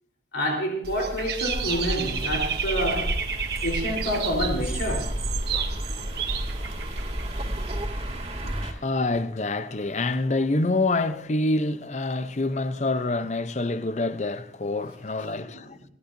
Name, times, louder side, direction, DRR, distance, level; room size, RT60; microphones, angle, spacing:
voice 1, 0.3-3.2 3.6-5.1, equal, 90° left, 3.9 m, -28 dB
Dog / Bird, 0.8-7.9, right 6 dB, 60° right, 1.5 m, -32 dB
sound 1, 1.5-8.7, equal, 35° right, 2.5 m, -31 dB
voice 2, 8.6-15.8, left 2 dB, 40° left, 0.7 m, -26 dB
30.0 x 11.5 x 2.7 m
head